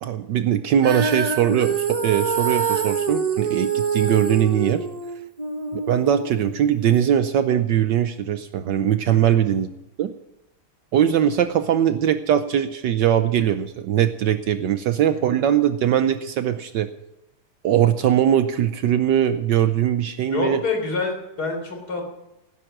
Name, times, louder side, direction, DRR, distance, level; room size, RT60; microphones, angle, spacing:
voice 1, 0.0-4.9 5.7-9.7 10.0-10.1 10.9-16.9 17.6-20.6, right 10 dB, 70° right, 10 dB, 1.2 m, -21 dB
Female singing, 0.8-7.0, right 5 dB, 30° right, 0.7 m, -26 dB
voice 2, 9.1-9.4 15.1-15.2 20.3-22.0, left 4 dB, 50° left, 2 dB, 4.0 m, -27 dB
17.0 x 10.0 x 6.1 m, 0.92 s
omnidirectional pair, 2.3 m